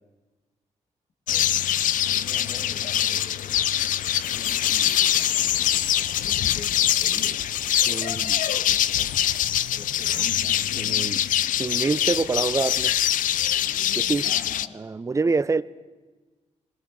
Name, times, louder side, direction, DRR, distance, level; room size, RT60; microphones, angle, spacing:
sound 1, 1.3-14.7, left 11 dB, 85° left, 0.4 m, -24 dB
voice 1, 2.0-3.7 4.0-7.4 8.4-11.4 14.2-14.9, left 4 dB, 60° left, 0 dB, 1.8 m, -45 dB
voice 2, 7.9-8.4 10.8-11.2 11.6-12.9 14.0-14.3 14.7-15.6, right 4 dB, 25° right, 15 dB, 0.5 m, -26 dB
19.0 x 18.0 x 3.8 m, 1.3 s
cardioid pair, 90°, 13 cm